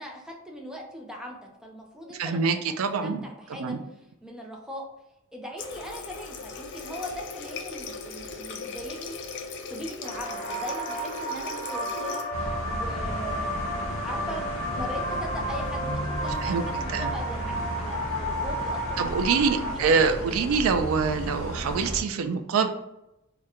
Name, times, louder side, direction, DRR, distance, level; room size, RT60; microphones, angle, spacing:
voice 1, 0.0-2.7 3.0-3.8 4.2-4.8 5.3-9.2 9.7-13.5 14.0-14.5 14.7-19.2 19.5-20.8, equal, 5° right, 0 dB, 0.5 m, -40 dB
voice 2, 2.1-3.2 3.6-3.8 16.4-16.6 16.9-17.1 19.0-22.7, right 5 dB, 70° right, 8 dB, 0.4 m, -25 dB
Water tap faucet, 5.6-12.3, left 4 dB, 55° left, 0.4 m, -38 dB
sound 1, 10.0-19.7, right 1 dB, 25° left, 0.9 m, -32 dB
sound 2, 12.3-22.0, equal, 80° left, 0.8 m, -34 dB
2.9 x 2.1 x 3.5 m, 0.88 s
head